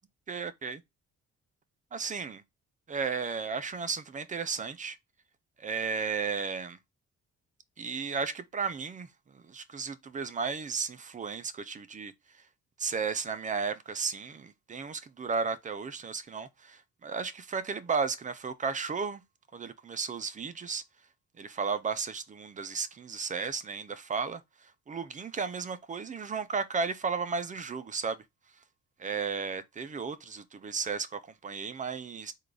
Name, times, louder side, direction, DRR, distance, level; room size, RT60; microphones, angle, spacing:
voice 1, 0.3-0.8 1.9-2.4 2.9-5.0 5.6-6.8 7.8-9.1 9.3-12.1 12.8-19.2 19.5-20.8 21.4-24.4 24.9-28.2 29.0-32.3, right 5 dB, 25° right, 0.4 m, -34 dB
3.7 x 2.3 x 3.2 m
cardioid pair, 90°, 30 cm